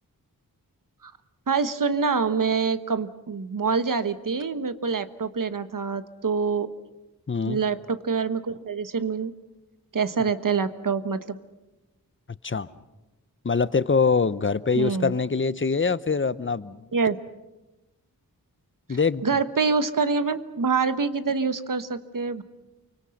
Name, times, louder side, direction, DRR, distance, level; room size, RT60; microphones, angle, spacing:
voice 1, 1.5-6.7 7.5-9.3 9.9-11.4 14.8-15.1 16.9-17.2 18.9-22.4, right 5 dB, 60° right, 12 dB, 1.3 m, -26 dB
voice 2, 7.3-7.6 12.4-12.7 13.4-16.8 18.9-19.2, left 4 dB, 35° left, 16 dB, 0.8 m, -24 dB
29.0 x 24.5 x 6.5 m, 1.0 s
wide cardioid pair, 95°, 36 cm